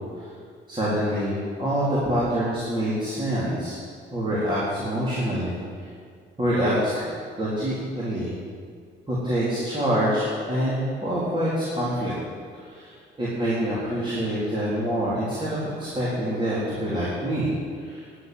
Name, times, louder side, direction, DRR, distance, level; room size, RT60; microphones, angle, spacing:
voice 1, 0.7-3.8 4.1-5.9 6.4-7.1 7.4-8.4 9.1-12.1 12.5-17.5 17.8-18.1, equal, 25° right, -9 dB, 4.0 m, -26 dB
11.5 x 7.7 x 9.4 m, 2.1 s
cardioid pair, 90°, 20 cm